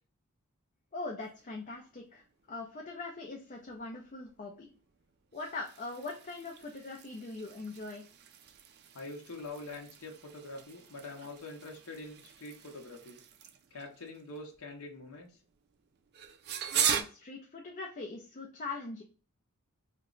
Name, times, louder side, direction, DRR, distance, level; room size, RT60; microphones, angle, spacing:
voice 1, 0.9-4.7 5.3-8.0 16.7-19.0, left 3 dB, 35° left, 0 dB, 0.5 m, -41 dB
sound 1, 1.2-17.0, right 9 dB, 45° right, 0.4 m, -41 dB
voice 2, 8.9-13.2 13.7-15.4, left 2 dB, 70° left, 0 dB, 0.7 m, -45 dB
2.9 x 2.2 x 3.7 m, 0.38 s
head